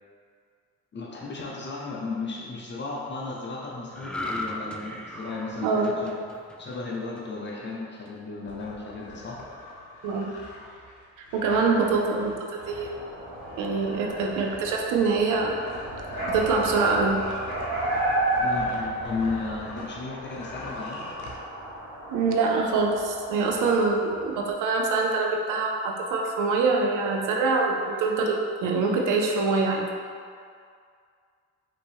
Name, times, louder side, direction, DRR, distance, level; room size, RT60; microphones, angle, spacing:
voice 1, 0.9-6.2 6.6-9.5 18.4-21.0, left 3 dB, 35° left, -3 dB, 0.7 m, -34 dB
sound 1, 3.9-7.4 7.8-8.1, left 1 dB, 5° left, 0.3 m, -37 dB
voice 2, 5.6-6.0 10.0-10.3 11.3-12.9 13.6-15.5 16.2-17.3 22.1-29.8, right 4 dB, 85° right, 1 dB, 0.6 m, -24 dB
sound 2, 8.5-19.9 20.2-21.3, left 2 dB, 85° left, 0.8 m, -43 dB
sound 3, 12.6-24.5, right 1 dB, 40° right, 1.4 m, -33 dB
5.1 x 2.9 x 3.4 m, 2.2 s
cardioid pair, 90°, 30 cm